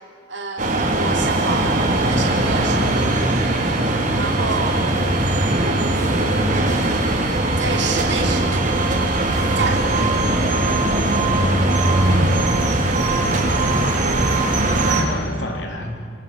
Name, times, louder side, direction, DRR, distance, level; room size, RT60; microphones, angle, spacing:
voice 1, 0.3-1.8 2.1-3.5 4.1-4.8 6.6-7.2 7.6-8.9 9.5-10.1, right 4 dB, 70° right, 1 dB, 3.0 m, -29 dB
sound 1, 0.6-15.0, right 2 dB, 45° right, 4.0 m, -19 dB
sound 2, 6.8-15.0, equal, 20° right, 4.3 m, -36 dB
voice 2, 12.1-13.8 14.8-16.0, equal, 70° left, 3 dB, 3.8 m, -30 dB
27.0 x 26.0 x 7.4 m, 2.5 s
head